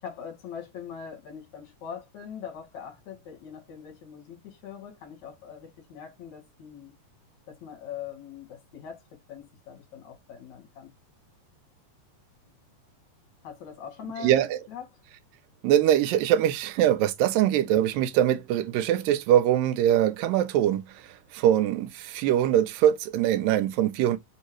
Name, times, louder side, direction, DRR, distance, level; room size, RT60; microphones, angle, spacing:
voice 1, 0.0-6.9 7.5-9.0 9.3-10.9 13.4-14.4 14.7-14.9, left 8 dB, 60° left, 2.6 m, -42 dB
voice 2, 15.6-20.8 21.3-24.2, right 11 dB, 85° right, 2.3 m, -22 dB
5.3 x 2.8 x 3.0 m
omnidirectional pair, 4.0 m